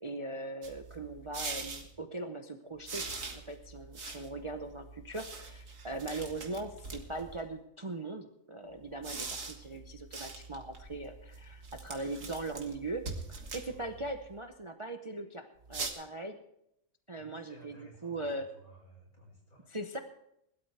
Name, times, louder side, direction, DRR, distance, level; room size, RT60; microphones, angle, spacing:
voice 1, 0.0-3.0 3.3-13.0 13.5-16.4 17.1-18.5 19.7-20.0, right 2 dB, 30° right, 6 dB, 0.6 m, -40 dB
sound 1, 0.6-1.9 2.9-7.4 8.8-14.3 15.6-15.9, right 4 dB, 60° right, 2.0 m, -43 dB
voice 2, 13.6-14.0 17.1-19.7, right 2 dB, 70° left, -1 dB, 5.6 m, -57 dB
20.5 x 12.5 x 3.4 m, 0.78 s
omnidirectional pair, 1.6 m